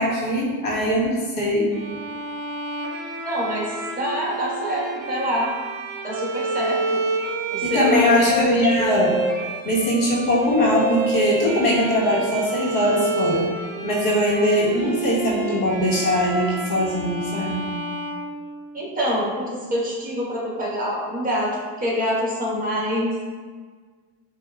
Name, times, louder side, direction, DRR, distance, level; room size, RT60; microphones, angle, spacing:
voice 1, 0.0-1.7 7.6-9.2 9.6-13.5 13.8-17.6, left 1 dB, 60° left, -4 dB, 1.3 m, -21 dB
Bowed string instrument, 1.7-18.9, right 3 dB, 40° right, 1.2 m, -29 dB
voice 2, 3.2-5.5 6.0-7.0 7.5-8.4 18.7-23.2, equal, 20° right, -5 dB, 1.4 m, -25 dB
7.0 x 2.6 x 2.3 m, 1.5 s
cardioid pair, 115°, 38 cm